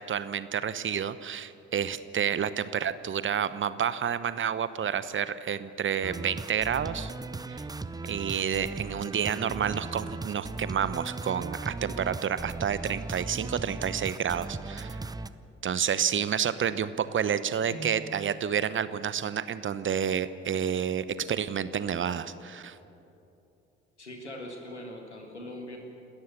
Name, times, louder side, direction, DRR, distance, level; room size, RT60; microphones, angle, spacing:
voice 1, 0.0-7.1 7.5-7.6 8.1-15.0 15.6-22.8, right 8 dB, 35° right, 15 dB, 0.9 m, -29 dB
sound 1, 6.0-15.3, right 3 dB, 10° right, 0.7 m, -37 dB
voice 2, 17.7-18.0 24.0-25.8, equal, 90° left, 2 dB, 1.9 m, -41 dB
29.0 x 13.5 x 7.0 m, 2.8 s
figure-of-eight pair, 45°, 33 cm